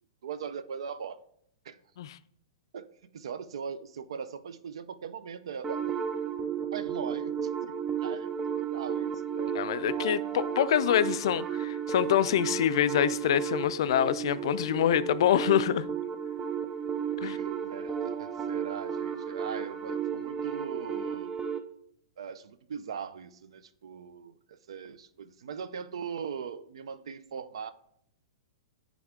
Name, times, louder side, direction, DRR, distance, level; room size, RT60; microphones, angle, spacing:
voice 1, 0.2-1.2 1.6-1.8 2.7-6.0 6.7-9.5 17.2-21.3 22.2-27.7, right 7 dB, 75° right, 0.5 m, -40 dB
sound 1, 5.6-21.6, right 7 dB, 10° right, 0.4 m, -33 dB
voice 2, 9.6-15.9 17.2-17.4, left 10 dB, 60° left, 0.3 m, -26 dB
9.7 x 3.5 x 3.6 m
hypercardioid pair, 155°, 3 cm